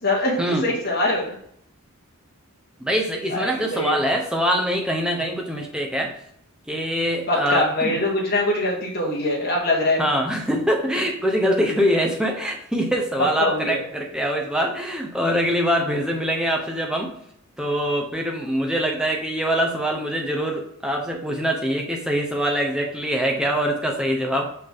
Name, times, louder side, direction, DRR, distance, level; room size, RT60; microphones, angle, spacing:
voice 1, 0.0-1.4 3.3-4.0 7.3-10.0 13.4-13.8, left 1 dB, 45° left, -3 dB, 2.2 m, -23 dB
voice 2, 2.8-6.2 6.7-8.0 10.0-17.1 17.6-24.5, equal, 5° right, 1 dB, 1.0 m, -24 dB
5.7 x 5.5 x 3.8 m, 0.71 s
head